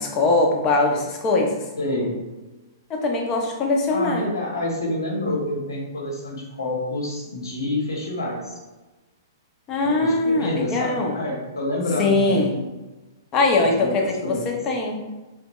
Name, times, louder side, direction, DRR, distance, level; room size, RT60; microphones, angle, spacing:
voice 1, 0.0-1.6 2.9-4.3 9.7-11.2 12.0-12.6 13.3-15.0, left 2 dB, 30° left, 1 dB, 0.6 m, -21 dB
voice 2, 1.8-2.2 3.9-8.6 9.8-12.6 13.6-14.0 14.3-14.4, left 1 dB, 90° left, -2 dB, 1.1 m, -28 dB
3.3 x 2.2 x 3.0 m, 1.1 s
hypercardioid pair, 130°, 2 cm